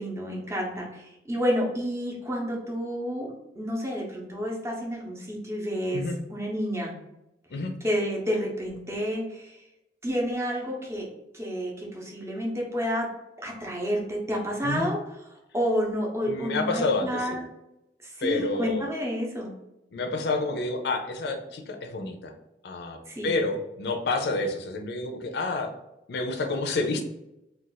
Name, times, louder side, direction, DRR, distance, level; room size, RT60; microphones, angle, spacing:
voice 1, 0.0-6.0 6.3-6.9 7.8-9.6 10.0-11.1 11.3-13.1 13.4-15.0 15.5-17.4 18.0-19.5 23.1-23.4, equal, 15° right, -1 dB, 0.7 m, -30 dB
voice 2, 16.3-17.4 18.2-18.9 19.9-22.3 22.6-25.7 26.1-27.0, left 3 dB, 60° left, 4 dB, 0.4 m, -29 dB
2.4 x 2.3 x 3.9 m, 0.89 s
head